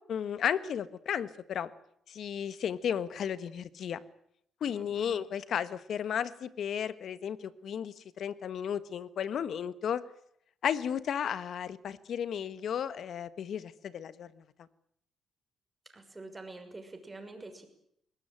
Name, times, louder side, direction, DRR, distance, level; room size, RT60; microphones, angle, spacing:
voice 1, 0.1-1.7 2.1-4.0 4.6-10.0 10.6-14.3, left 8 dB, 65° left, 14 dB, 1.4 m, -34 dB
voice 2, 4.7-5.2 15.9-17.7, right 2 dB, 20° right, 6 dB, 6.0 m, -47 dB
21.5 x 19.5 x 9.1 m, 0.71 s
cardioid pair, 90°, 0 cm